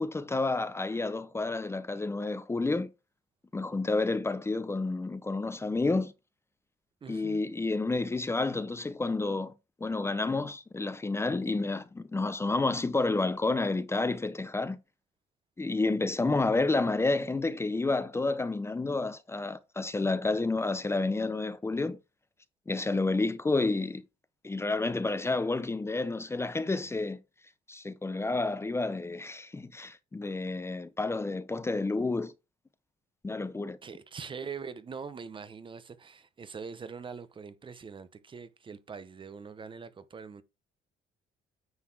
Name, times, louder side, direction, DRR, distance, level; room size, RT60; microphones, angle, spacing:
voice 1, 0.0-2.9 3.5-6.1 7.1-9.5 9.8-14.8 15.6-22.0 22.7-24.0 24.4-27.2 27.7-32.3 33.2-33.8, left 3 dB, 15° left, 0.7 m, -30 dB
voice 2, 7.0-7.4 33.8-40.4, right 5 dB, 30° right, 0.8 m, -43 dB
9.6 x 4.1 x 4.8 m
cardioid pair, 110°, 17 cm